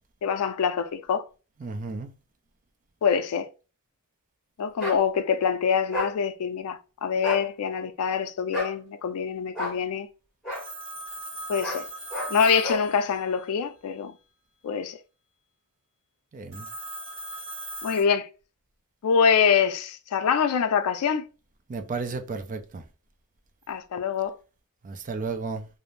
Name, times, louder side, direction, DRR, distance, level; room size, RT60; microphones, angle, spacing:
voice 1, 0.2-1.3 3.0-3.5 4.6-10.1 11.5-11.9 12.3-14.1 14.6-15.0 17.8-18.3 19.0-21.3 23.7-24.4, left 6 dB, 85° left, 0.4 m, -25 dB
voice 2, 1.6-2.1 16.3-16.7 21.7-22.8 24.8-25.7, right 4 dB, 35° right, 0.4 m, -33 dB
sound 1, 4.8-5.0 5.9-6.1 7.2-7.5 8.5-8.8 9.5-9.8 10.4-10.7 11.6-11.8 12.1-12.3 12.6-12.9, left 1 dB, ahead, 1.2 m, -31 dB
Telephone, 10.5-13.6 16.5-18.0, right 2 dB, 60° right, 0.8 m, -39 dB
2.5 x 2.0 x 3.0 m
head